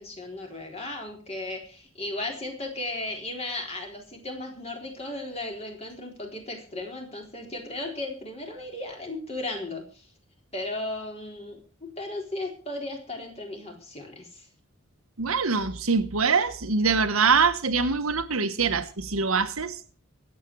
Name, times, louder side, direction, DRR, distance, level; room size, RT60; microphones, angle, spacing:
voice 1, 0.0-10.1 10.5-14.5, left 2 dB, 30° left, 4.1 m, -35 dB
voice 2, 15.2-19.7, right 5 dB, 80° right, 1.4 m, -24 dB
24.0 x 8.5 x 4.8 m
head